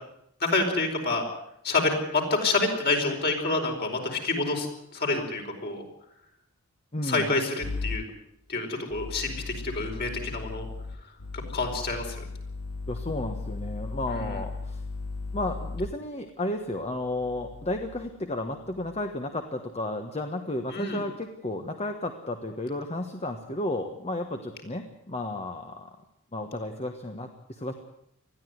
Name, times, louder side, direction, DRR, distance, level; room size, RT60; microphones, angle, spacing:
voice 1, 0.4-1.2 1.6-4.7 4.9-5.8 7.0-8.0 8.5-10.7 11.3-12.1 14.1-14.3 20.7-21.0, left 3 dB, 45° left, 2 dB, 4.8 m, -27 dB
voice 2, 6.9-7.4 12.9-14.8 15.3-25.9 26.3-27.7, left 1 dB, 30° left, 5 dB, 1.4 m, -33 dB
sound 1, 7.6-8.0 8.9-15.9 16.9-18.1 18.6-19.0, left 3 dB, 80° left, 1.4 m, -37 dB
20.5 x 14.0 x 9.5 m, 0.77 s
head